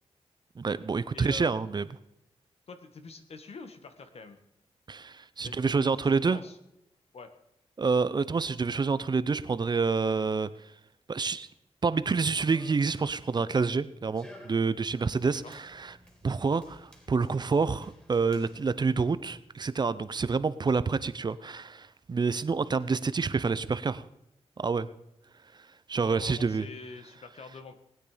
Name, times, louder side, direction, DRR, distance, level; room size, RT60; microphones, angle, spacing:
voice 1, 0.6-1.9 4.9-6.4 7.8-10.5 11.1-11.5 11.8-15.9 16.2-24.0 24.6-24.9 25.9-26.7, right 4 dB, 40° right, 15 dB, 0.7 m, -28 dB
voice 2, 1.1-1.6 2.7-4.4 5.4-6.6 7.1-7.3 15.4-15.6 26.0-27.8, left 4 dB, 65° left, 8 dB, 1.7 m, -45 dB
Run, 11.9-19.5, left 1 dB, 10° left, 3.8 m, -56 dB
20.0 x 9.4 x 5.1 m, 0.85 s
cardioid pair, 90°, 11 cm